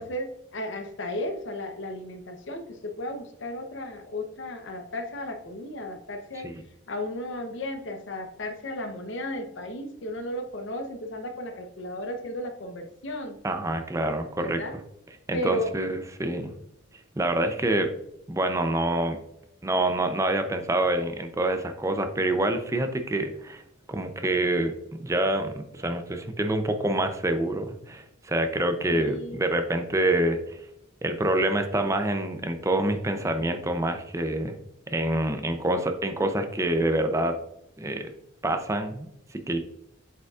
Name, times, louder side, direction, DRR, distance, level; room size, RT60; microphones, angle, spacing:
voice 1, 0.0-6.5 6.9-13.4 14.4-14.8 15.3-15.7 28.9-29.4, left 1 dB, 65° left, 6 dB, 0.8 m, -34 dB
voice 2, 13.4-14.6 15.3-16.5 17.2-17.9 18.3-19.2 19.6-23.6 23.9-24.7 25.0-30.6 31.0-34.6 34.9-37.4 37.8-38.1 38.4-39.6, right 1 dB, 15° right, 7 dB, 0.5 m, -26 dB
7.9 x 5.1 x 2.4 m, 0.81 s
head